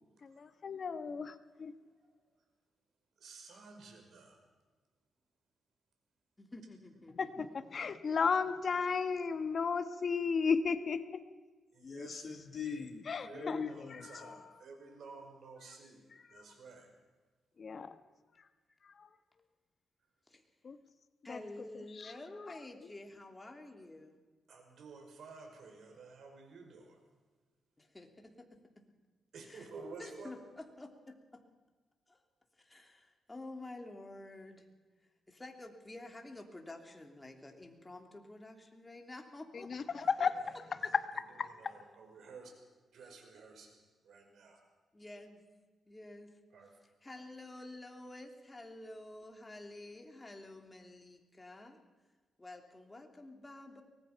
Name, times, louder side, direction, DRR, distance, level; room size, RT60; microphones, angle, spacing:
voice 1, 0.2-1.7 7.2-11.2 11.8-14.6 17.6-18.0 19.0-19.1 20.6-20.8 21.3-21.9 39.5-41.7, left 5 dB, 50° left, 11 dB, 1.2 m, -35 dB
voice 2, 3.2-4.4 11.7-16.0 16.3-16.9 24.5-27.1 29.3-30.3 40.3-40.5 40.8-41.0 41.3-42.5 42.9-43.8 44.0-44.6 46.5-46.7, right 4 dB, 70° right, 3 dB, 5.5 m, -52 dB
voice 3, 6.4-8.0 20.3-20.4 21.2-24.2 27.8-28.9 29.5-29.7 30.0-31.4 32.1-32.2 32.6-34.7 35.3-40.1 43.0-43.1 44.9-45.4 45.8-46.4 47.0-51.8 52.4-53.8, left 2 dB, 15° left, 3 dB, 3.0 m, -50 dB
24.0 x 19.0 x 5.8 m, 1.3 s
cardioid pair, 105°, 0 cm